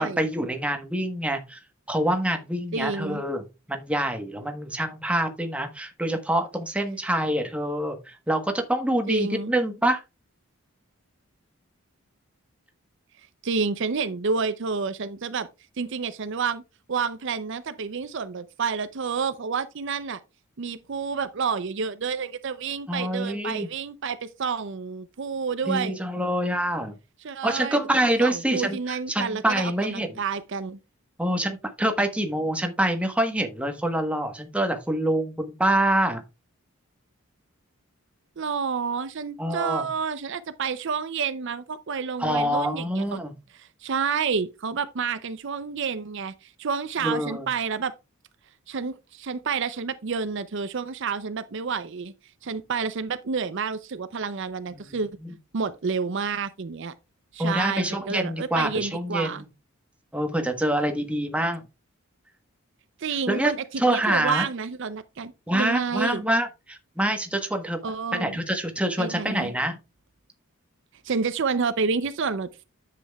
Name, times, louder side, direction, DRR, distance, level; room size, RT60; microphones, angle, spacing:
voice 1, 0.0-1.6 1.9-10.0 22.9-23.7 25.7-26.9 27.4-30.2 31.2-36.2 39.4-39.9 42.2-43.3 47.0-47.5 54.7-55.0 55.2-55.3 57.4-59.4 60.1-61.6 63.3-64.5 65.5-67.8 68.1-69.8, right 1 dB, 5° right, 1.1 m, -26 dB
voice 2, 2.7-3.2 9.1-9.5 13.4-15.5 15.8-16.6 16.9-20.2 20.6-26.0 27.2-27.8 28.2-30.8 38.4-43.2 43.5-47.9 48.7-52.1 52.4-55.1 55.5-56.9 57.3-59.4 63.0-66.2 67.8-68.4 69.0-69.5 71.0-72.6, right 5 dB, 55° right, 0.5 m, -29 dB
10.0 x 7.6 x 2.3 m
head